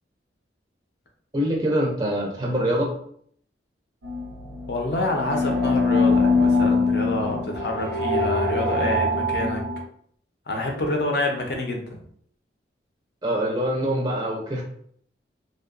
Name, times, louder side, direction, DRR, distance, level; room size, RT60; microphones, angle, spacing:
voice 1, 1.3-2.9 13.2-14.6, equal, 20° right, -2 dB, 0.4 m, -24 dB
sound 1, 4.0-9.8, left 3 dB, 85° right, 0.5 m, -23 dB
voice 2, 4.7-9.6 10.5-12.0, left 2 dB, 60° left, 2 dB, 0.5 m, -27 dB
2.6 x 2.2 x 2.4 m, 0.63 s
head